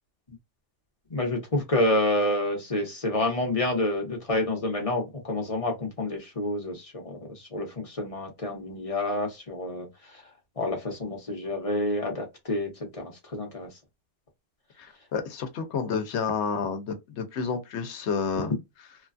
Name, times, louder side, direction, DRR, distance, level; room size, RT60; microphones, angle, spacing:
voice 1, 1.1-10.2 10.6-13.7, left 1 dB, 35° left, 1.0 m, -28 dB
voice 2, 14.8-18.5, left 5 dB, 80° left, 1.0 m, -30 dB
3.2 x 2.3 x 2.5 m
omnidirectional pair, 1.1 m